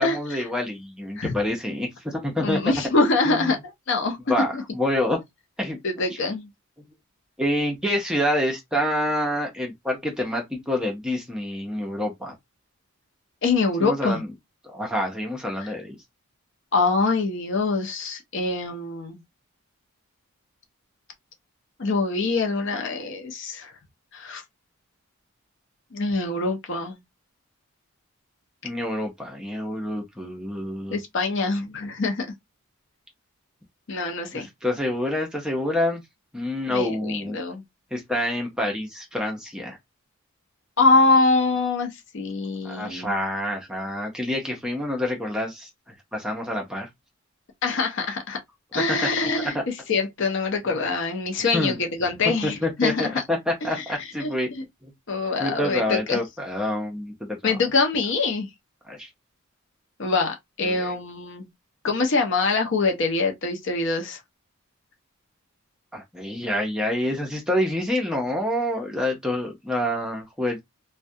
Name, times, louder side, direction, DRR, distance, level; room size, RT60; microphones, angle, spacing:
voice 1, 0.0-2.7 3.3-3.5 4.3-5.2 5.6-5.8 7.4-12.3 13.8-14.3 14.7-16.0 28.6-31.0 34.3-36.0 36.3-37.4 37.9-39.8 42.6-45.7 46.1-46.9 48.9-49.0 49.5-49.6 51.5-51.8 52.4-54.5 54.8-54.9 55.4-57.6 58.9-59.1 60.6-60.9 65.9-70.6, left 1 dB, 5° right, 0.5 m, -27 dB
voice 2, 2.4-4.2 4.5-4.6 5.8-6.5 13.4-14.2 15.6-15.7 16.7-19.2 21.8-23.7 24.1-24.4 25.9-27.0 30.9-32.3 33.9-34.5 36.7-37.6 40.8-43.1 47.6-48.4 48.7-53.2 53.7-54.6 55.1-56.2 57.4-58.5 60.0-61.5 61.8-64.2, left 3 dB, 55° left, 0.6 m, -24 dB
2.3 x 2.2 x 2.6 m
head